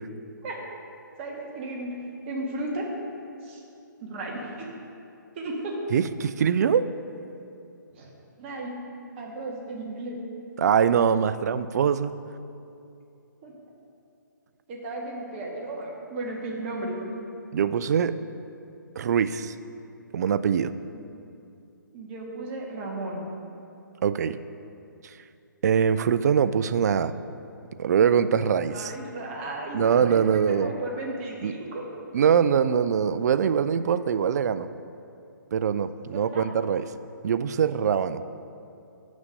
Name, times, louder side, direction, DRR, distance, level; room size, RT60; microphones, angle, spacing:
voice 1, 1.2-2.0 2.3-2.8 3.4-3.6 4.0-4.7 5.3-5.7 7.9-8.1 8.4-8.7 9.2-10.2 13.4-13.5 14.7-17.0 20.9-21.1 21.9-23.2 28.5-31.8 36.1-36.4, right 2 dB, 35° right, -2 dB, 1.7 m, -35 dB
voice 2, 5.9-6.9 10.6-12.1 17.5-18.1 19.0-19.5 20.1-20.7 24.0-24.4 25.0-25.1 25.6-27.1 27.8-28.9 29.7-30.7 31.4-31.5 32.1-34.7 35.5-36.9 37.2-38.2, right 7 dB, 55° right, 13 dB, 0.4 m, -23 dB
9.4 x 6.3 x 5.3 m, 2.6 s
hypercardioid pair, 145°, 11 cm